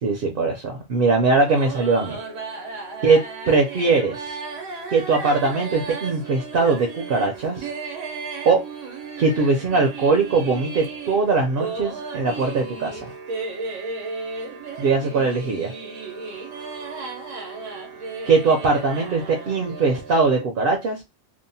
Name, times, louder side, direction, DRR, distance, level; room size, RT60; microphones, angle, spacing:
voice 1, 0.0-2.2 3.0-4.4 4.9-7.7 8.4-8.6 9.2-13.1 14.8-15.7 18.3-21.0, right 4 dB, 60° right, 0.6 m, -21 dB
sound 1, 1.3-20.4, right 4 dB, 85° right, 1.1 m, -34 dB
2.7 x 2.1 x 2.6 m
omnidirectional pair, 1.3 m